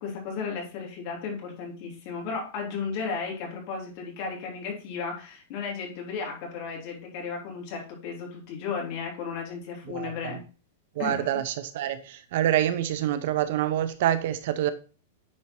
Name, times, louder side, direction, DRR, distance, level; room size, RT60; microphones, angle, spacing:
voice 1, 0.0-10.4 11.0-11.3, left 5 dB, 40° left, 3.2 m, -34 dB
voice 2, 9.9-10.4 11.0-14.7, right 11 dB, 55° right, 0.8 m, -27 dB
9.5 x 4.5 x 4.4 m
supercardioid pair, 160°, 0 cm